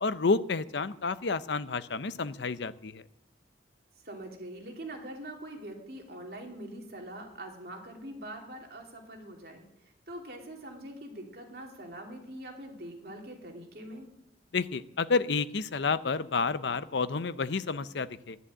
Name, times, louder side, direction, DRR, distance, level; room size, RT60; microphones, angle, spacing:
voice 1, 0.0-3.0 14.5-18.4, left 4 dB, 75° left, 14 dB, 0.6 m, -30 dB
voice 2, 4.0-9.6 10.1-14.1, right 1 dB, 55° right, 1 dB, 2.9 m, -43 dB
11.0 x 11.0 x 8.8 m, 0.87 s
head